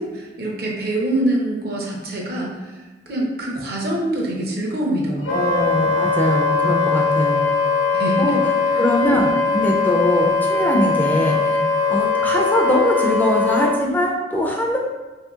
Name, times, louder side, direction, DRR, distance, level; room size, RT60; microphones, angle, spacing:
voice 1, 0.0-2.6 3.1-5.4 7.9-8.4, right 1 dB, 60° right, -2 dB, 0.7 m, -24 dB
Wind instrument woodwind instrument, 5.2-13.8, left 4 dB, 90° left, 0.8 m, -20 dB
voice 2, 5.3-7.6 8.2-8.4 8.8-11.6 11.9-14.8, left 1 dB, 10° left, -1 dB, 0.3 m, -21 dB
3.0 x 2.7 x 3.5 m, 1.2 s
head